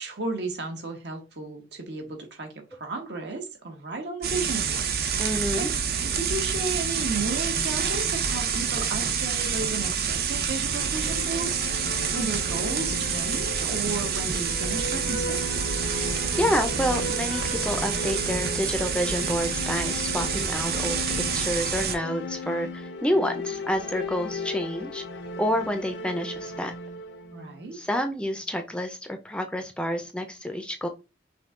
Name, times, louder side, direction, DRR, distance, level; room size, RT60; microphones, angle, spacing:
voice 1, 0.0-4.9 5.6-5.7 5.9-15.6 27.3-27.8, right 3 dB, 75° right, 4 dB, 1.3 m, -34 dB
sound 1, 4.2-22.0, right 6 dB, 55° right, 0.6 m, -28 dB
voice 2, 5.2-5.7 16.4-25.0 25.4-26.7 27.7-30.9, equal, 5° left, 6 dB, 0.5 m, -28 dB
sound 2, 10.6-28.5, left 2 dB, 90° left, 0.8 m, -36 dB
5.7 x 2.3 x 3.6 m, 0.29 s
head